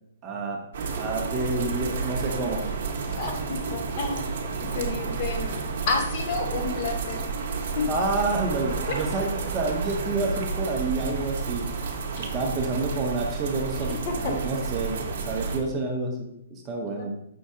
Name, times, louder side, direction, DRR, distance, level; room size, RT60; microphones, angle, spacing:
voice 1, 0.2-0.6 1.0-2.7 7.9-11.7 12.2-17.1, right 3 dB, 20° right, 1 dB, 0.5 m, -29 dB
sound 1, 0.7-15.6, right 5 dB, 55° right, 0.7 m, -31 dB
voice 2, 3.1-4.3 4.7-5.5 5.9-7.3 7.7-7.9 12.1-12.2 14.1-14.3 16.9-17.0, left 4 dB, 30° left, 3 dB, 0.7 m, -30 dB
5.3 x 2.3 x 3.6 m, 0.80 s
hypercardioid pair, 165°, 0 cm